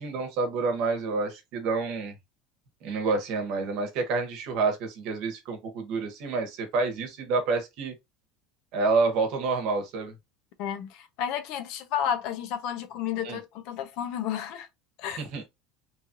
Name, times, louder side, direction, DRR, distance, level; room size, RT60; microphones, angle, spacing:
voice 1, 0.0-2.1 2.8-7.9 8.7-10.1 13.2-13.4 15.2-15.4, right 4 dB, 60° right, 1.0 m, -28 dB
voice 2, 10.6-14.7 15.0-15.2, left 9 dB, 60° left, 0.6 m, -32 dB
3.1 x 2.4 x 2.7 m
supercardioid pair, 135°, 0 cm